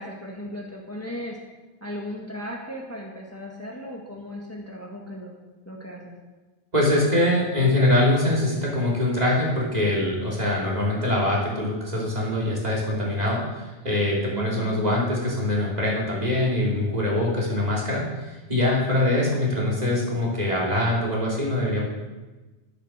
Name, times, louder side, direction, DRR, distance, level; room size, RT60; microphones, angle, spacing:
voice 1, 0.0-1.4 1.8-5.3 5.7-6.1 14.3-15.0, equal, 15° left, -2 dB, 1.7 m, -36 dB
voice 2, 6.7-21.9, left 1 dB, 40° right, -5 dB, 3.3 m, -23 dB
11.0 x 8.3 x 6.5 m, 1.2 s
omnidirectional pair, 1.1 m